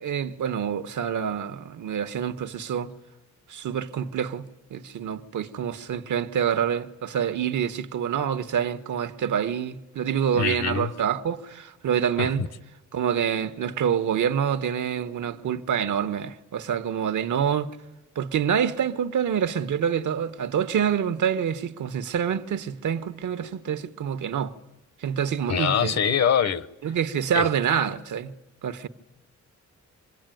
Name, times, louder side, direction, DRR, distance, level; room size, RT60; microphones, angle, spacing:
voice 1, 0.0-2.9 3.5-12.5 12.9-17.7 18.1-24.5 25.0-26.0 26.8-28.3 28.6-28.9, right 8 dB, 70° right, 1.3 m, -27 dB
voice 2, 10.3-10.9 12.2-12.3 25.5-26.7 27.3-27.5, left 7 dB, 55° left, 1.1 m, -23 dB
26.5 x 21.5 x 9.2 m
wide cardioid pair, 160°, 31 cm